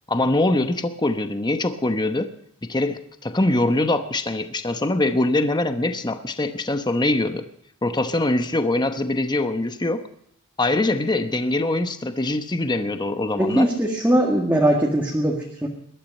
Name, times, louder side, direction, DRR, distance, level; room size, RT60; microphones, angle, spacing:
voice 1, 0.1-2.3 2.6-7.4 7.8-10.0 10.6-13.7, left 2 dB, 20° left, 8 dB, 0.9 m, -23 dB
voice 2, 13.4-15.7, right 1 dB, 10° right, -1 dB, 1.8 m, -20 dB
20.5 x 12.5 x 5.3 m, 0.74 s
head